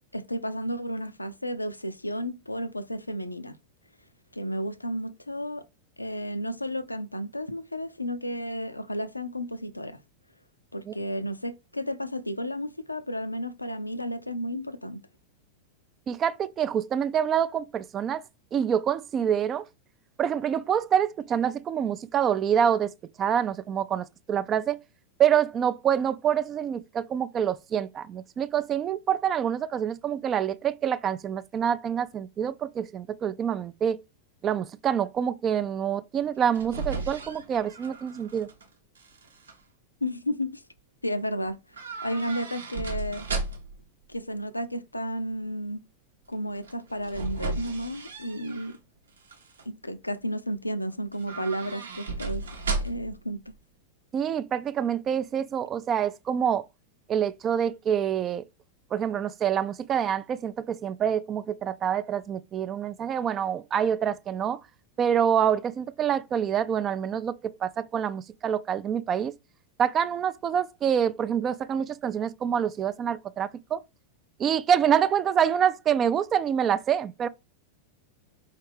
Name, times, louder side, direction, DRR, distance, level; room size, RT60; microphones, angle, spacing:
voice 1, 0.0-3.6 4.3-5.6 6.0-10.0 10.7-15.0 40.0-40.6 41.0-41.6 42.0-43.3 44.1-45.8 46.3-48.7 49.7-52.4 52.8-53.4, equal, 85° left, 0.4 m, -32 dB
voice 2, 16.1-18.2 18.5-19.6 20.2-22.9 23.2-24.8 25.2-34.0 34.4-38.5 54.1-56.7 57.1-58.4 58.9-64.6 65.0-69.3 69.8-73.8 74.4-77.3, right 8 dB, 25° right, 0.3 m, -26 dB
sound 1, 36.3-38.6 39.0-39.5 41.7-43.8 46.6-48.8 49.2-49.7 51.1-53.2 53.5-53.6, right 3 dB, 70° right, 0.8 m, -35 dB
4.7 x 3.2 x 3.3 m
figure-of-eight pair, 90°, 0 cm